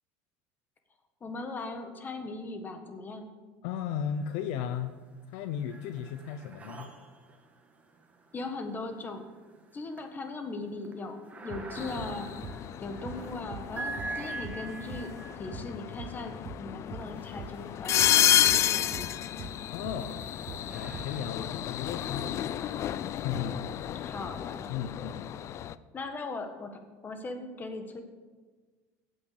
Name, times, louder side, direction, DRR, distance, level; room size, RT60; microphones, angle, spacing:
voice 1, 1.2-3.3 8.3-9.3 9.7-12.3 12.8-15.1 15.4-19.2 24.0-24.7 25.9-28.0, left 3 dB, 25° left, 6 dB, 1.4 m, -39 dB
voice 2, 3.6-4.9 5.3-6.9 19.7-20.2 20.7-24.0 24.7-25.4, left 8 dB, 75° left, 9 dB, 0.7 m, -36 dB
sound 1, 4.1-4.8 5.2-18.3 19.0-23.5, right 3 dB, 20° right, 1.5 m, -46 dB
sound 2, 11.5-11.7 12.0-12.2 12.4-12.6 13.0-13.2 13.5-13.7 14.0-14.2 14.4-14.6 14.9-15.1 15.5-15.7 16.0-16.2 16.4-16.6 16.9-17.1 17.4-17.6 18.0-18.2 18.5-18.7 18.9-19.1 19.4-19.6 19.8-20.0 20.5-20.7 20.9-21.1, right 6 dB, 45° right, 1.0 m, -43 dB
sound 3, 11.8-25.7, left 11 dB, 40° left, 0.4 m, -31 dB
9.0 x 7.8 x 8.0 m, 1.4 s
supercardioid pair, 130°, 7 cm